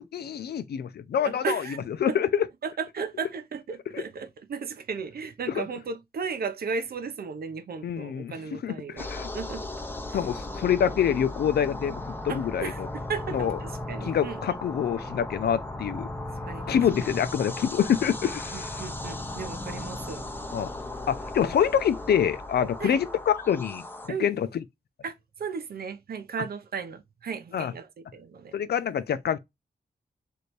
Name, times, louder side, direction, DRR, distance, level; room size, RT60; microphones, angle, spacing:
voice 1, 0.0-2.4 3.9-4.0 5.5-5.7 7.8-8.3 8.6-9.3 10.1-12.9 13.3-13.6 14.0-16.1 16.7-18.9 20.5-20.7 21.1-24.6 27.5-27.7 28.5-29.4, left 8 dB, 85° left, 0.5 m, -26 dB
voice 2, 1.2-1.8 2.6-9.1 9.3-9.7 10.1-10.2 12.3-14.6 16.5-17.1 18.2-20.2 22.8-23.0 24.1-24.3 25.0-28.5, right 5 dB, 75° right, 0.8 m, -35 dB
sound 1, 9.0-24.1, left 2 dB, 15° left, 0.6 m, -36 dB
3.2 x 2.7 x 4.2 m
wide cardioid pair, 140°, 16 cm